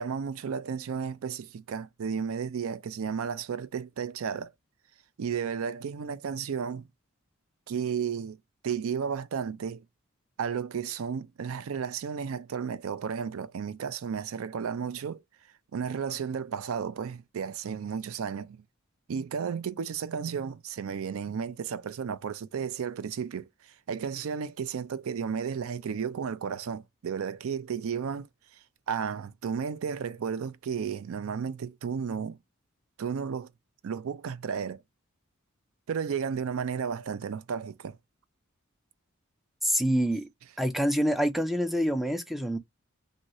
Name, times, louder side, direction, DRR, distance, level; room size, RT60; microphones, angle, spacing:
voice 1, 0.0-4.5 5.2-6.9 7.7-8.4 8.6-9.8 10.4-15.2 15.7-18.6 19.1-23.5 23.9-28.3 28.9-32.4 33.0-33.5 33.8-34.8 35.9-38.0, right 6 dB, 70° right, 0.4 m, -33 dB
voice 2, 39.6-40.3 40.6-42.6, equal, ahead, 0.3 m, -26 dB
2.7 x 2.7 x 2.9 m
head